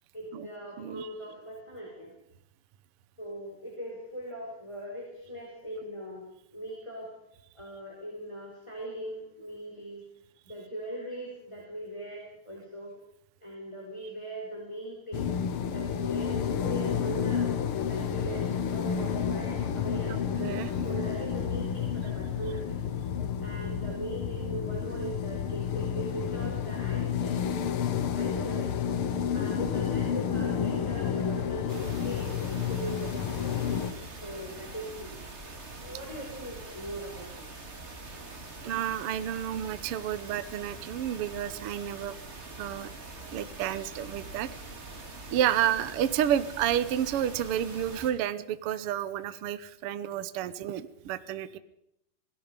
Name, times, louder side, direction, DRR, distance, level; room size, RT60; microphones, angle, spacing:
voice 1, 0.1-2.1 3.2-6.2 6.5-7.1 7.5-10.0 10.4-12.9 13.4-15.3 15.7-17.6 17.9-22.8 23.4-27.5 28.2-28.8 29.3-32.4 32.7-33.5 34.2-35.2 35.8-37.5, right 1 dB, 10° left, -2 dB, 4.7 m, -40 dB
voice 2, 0.8-1.1 20.1-20.7 38.6-42.2 42.6-42.9 43.3-44.5 45.3-51.6, right 10 dB, 80° right, 14 dB, 1.3 m, -30 dB
sound 1, 15.1-33.9, left 7 dB, 60° left, 1.5 m, -30 dB
sound 2, 31.7-48.1, right 2 dB, 20° right, 2.2 m, -44 dB
26.5 x 19.0 x 5.2 m, 0.79 s
omnidirectional pair, 3.9 m